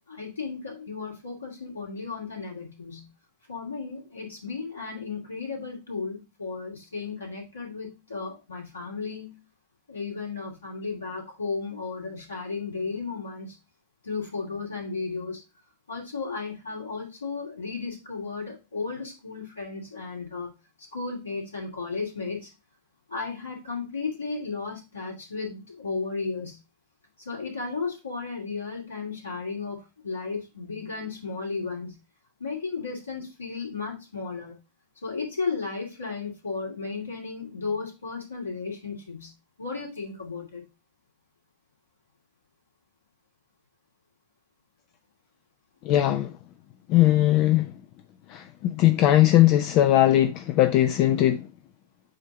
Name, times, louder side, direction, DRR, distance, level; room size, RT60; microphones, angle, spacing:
voice 1, 0.1-3.1 3.5-9.4 9.9-13.6 14.0-15.4 15.9-20.5 20.9-22.5 23.1-26.6 27.2-32.0 32.4-34.6 35.0-39.3 39.6-40.6, left 4 dB, 75° left, 2.7 m, -34 dB
voice 2, 45.9-46.3 46.9-47.7 48.7-51.4, left 13 dB, 40° left, 0.5 m, -19 dB
7.7 x 2.8 x 5.4 m
figure-of-eight pair, 90°, 0 cm